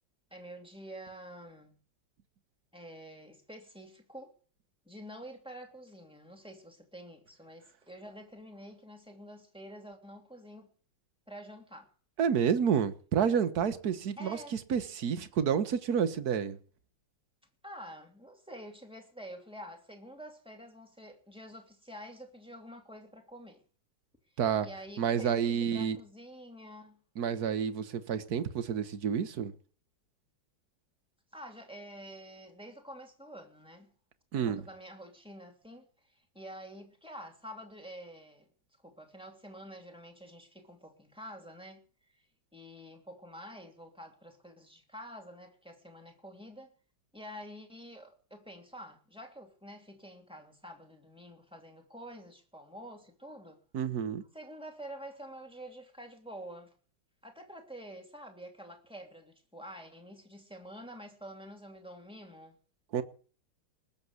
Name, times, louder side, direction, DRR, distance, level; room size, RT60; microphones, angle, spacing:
voice 1, 0.3-1.8 2.7-4.3 4.8-10.7 11.3-11.9 14.2-14.6 17.6-23.6 24.6-27.0 31.3-33.9 34.3-38.5 38.8-41.8 42.5-46.7 47.1-53.6 54.3-56.7 57.2-62.5, equal, ahead, 2.6 m, -48 dB
voice 2, 12.2-16.6 24.4-24.7 25.0-26.0 27.2-29.5 34.3-34.6 53.7-54.2 62.9-63.0, right 7 dB, 55° right, 1.5 m, -29 dB
20.0 x 7.3 x 8.1 m
omnidirectional pair, 2.2 m